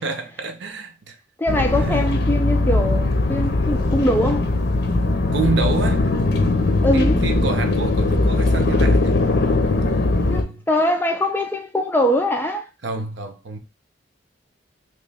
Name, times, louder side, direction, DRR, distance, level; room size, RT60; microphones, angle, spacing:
voice 1, 0.0-1.2 1.7-2.1 5.3-6.1 6.9-9.2 9.9-10.6 12.8-13.6, right 4 dB, 65° right, 0.7 m, -28 dB
voice 2, 1.4-4.5 6.8-7.2 10.3-12.7, left 1 dB, 10° left, 0.3 m, -22 dB
sound 1, 1.5-10.4, left 2 dB, 55° left, 0.6 m, -20 dB
3.1 x 2.9 x 3.4 m
head